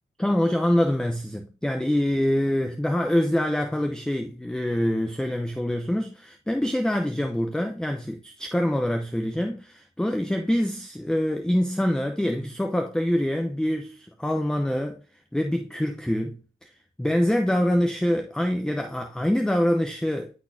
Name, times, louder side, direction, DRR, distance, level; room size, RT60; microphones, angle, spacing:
voice 1, 0.2-15.0 15.3-16.7 17.0-20.3, left 1 dB, 5° left, 0.7 m, -25 dB
9.8 x 4.2 x 2.7 m
cardioid pair, 90°, 20 cm